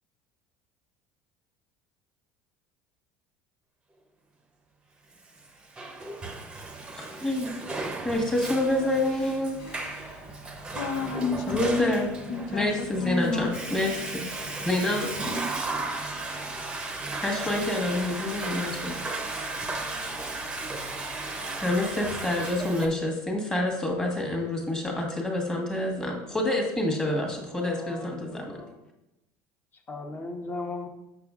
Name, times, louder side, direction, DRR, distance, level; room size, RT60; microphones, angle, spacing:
Water / Toilet flush, 5.4-22.9, right 2 dB, 15° right, 0.7 m, -35 dB
voice 1, 6.9-7.5 8.0-9.6 11.5-14.3 14.6-15.1 17.2-19.0 21.6-28.4, left 1 dB, 10° left, 0 dB, 1.3 m, -27 dB
voice 2, 8.6-8.9 9.2-9.3 9.6-10.3 10.7-13.9, left 5 dB, 80° left, 6 dB, 0.5 m, -32 dB
voice 3, 27.5-28.8 29.7-30.9, left 3 dB, 30° left, 4 dB, 0.9 m, -38 dB
6.8 x 6.0 x 2.4 m, 0.91 s
supercardioid pair, 120°, 7 cm